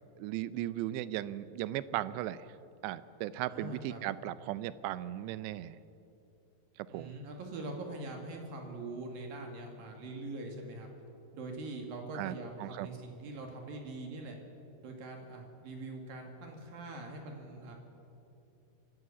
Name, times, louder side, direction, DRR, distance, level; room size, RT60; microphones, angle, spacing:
voice 1, 0.2-2.5 2.8-5.8 6.8-7.1 12.1-12.3 12.6-12.9, right 14 dB, 85° right, 16 dB, 2.8 m, -37 dB
voice 2, 3.5-4.1 6.9-10.9 11.3-14.4 14.8-17.7, right 2 dB, 60° right, 2 dB, 3.4 m, -43 dB
25.0 x 13.0 x 8.4 m, 2.7 s
omnidirectional pair, 4.9 m